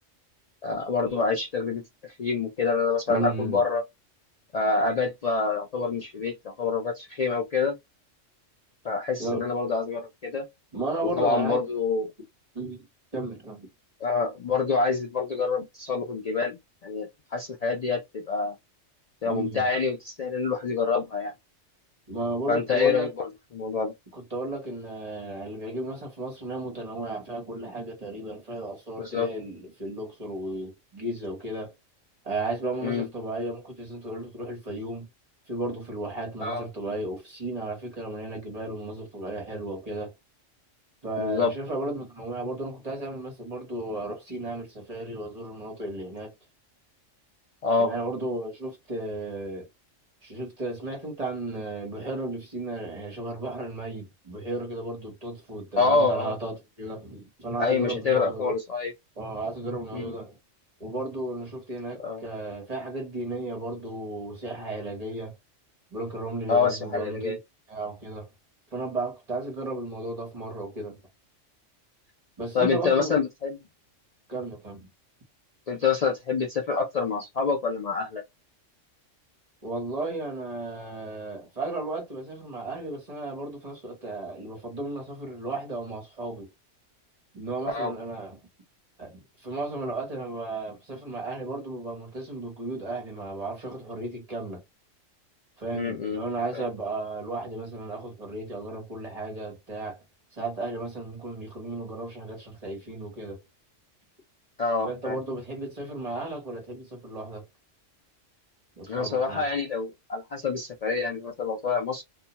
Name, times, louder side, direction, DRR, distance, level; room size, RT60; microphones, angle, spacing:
voice 1, 0.6-3.8 4.5-7.7 8.8-10.5 11.0-12.1 14.0-18.5 19.2-21.3 22.5-23.3 23.5-23.9 29.0-29.3 32.8-33.1 36.4-36.7 41.2-41.5 47.6-47.9 55.8-56.3 57.6-58.9 59.9-60.1 62.0-62.2 66.5-67.4 72.5-73.6 75.7-78.2 87.7-87.9 95.7-96.2 96.5-96.6 104.6-105.2 108.9-112.0, left 4 dB, 85° left, 0.3 m, -26 dB
voice 2, 3.1-3.6 9.2-9.5 10.7-11.6 12.5-12.9 13.1-13.7 19.2-19.7 22.1-23.1 24.1-31.7 32.2-35.1 35.5-40.1 41.0-46.3 47.8-49.7 50.2-58.6 59.2-60.4 60.8-65.3 65.9-67.4 67.7-68.3 68.7-71.0 72.4-73.2 74.3-74.9 79.6-86.5 87.3-88.4 89.0-94.6 95.6-100.0 100.3-103.4 104.8-107.5 108.8-109.5, right 2 dB, 35° right, 1.0 m, -34 dB
2.3 x 2.2 x 2.7 m
omnidirectional pair, 1.3 m